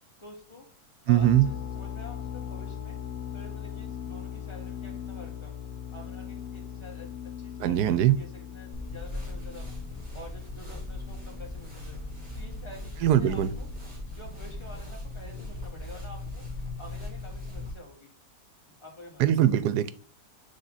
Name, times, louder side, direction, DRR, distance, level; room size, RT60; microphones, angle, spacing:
voice 1, 0.2-0.7 1.1-3.0 3.3-5.5 5.9-9.7 10.1-12.0 12.3-12.9 13.2-13.7 14.1-16.5 16.8-18.1 18.7-19.2, left 1 dB, 20° left, -1 dB, 1.9 m, -48 dB
voice 2, 1.1-1.5 7.6-8.2 13.0-13.5 19.2-19.9, right 12 dB, 85° right, 13 dB, 1.2 m, -21 dB
sound 1, 1.2-14.8, left 9 dB, 70° left, 1.0 m, -40 dB
sound 2, 8.7-17.7, left 2 dB, 25° right, 3.7 m, -39 dB
6.6 x 3.7 x 3.9 m, 0.41 s
omnidirectional pair, 1.7 m